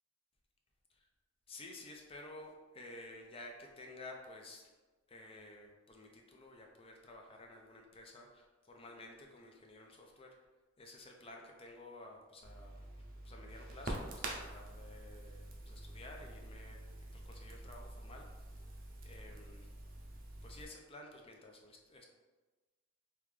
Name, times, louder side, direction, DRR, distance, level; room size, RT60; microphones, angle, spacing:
voice 1, 1.5-4.7 5.1-10.3 10.8-12.8 13.2-18.3 19.0-19.7 20.4-22.1, left 2 dB, 30° left, 1 dB, 0.5 m, -53 dB
Crackle, 12.4-20.6, right 1 dB, 50° right, 0.6 m, -47 dB
3.6 x 3.0 x 3.2 m, 1.2 s
head